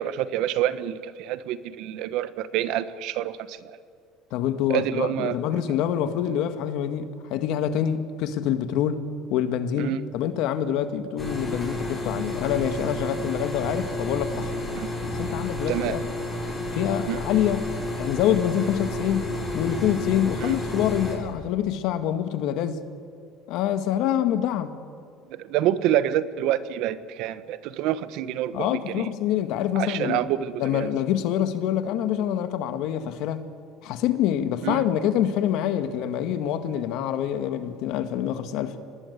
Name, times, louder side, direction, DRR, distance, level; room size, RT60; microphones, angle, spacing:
voice 1, 0.0-3.6 4.7-5.3 9.8-10.0 14.7-14.9 15.7-16.0 17.1-17.2 20.4-20.6 25.3-29.1 29.7-30.9 34.6-34.8, right 12 dB, 65° right, 14 dB, 1.2 m, -27 dB
voice 2, 4.3-9.0 9.3-14.5 15.0-16.1 16.7-17.7 18.0-22.8 23.5-24.7 28.5-30.3 30.6-33.5 33.8-38.8, left 10 dB, 65° left, 9 dB, 1.8 m, -26 dB
sound 1, 11.2-21.1, left 1 dB, 10° left, 7.8 m, -31 dB
25.5 x 20.0 x 8.3 m, 2.3 s
cardioid pair, 135°, 0 cm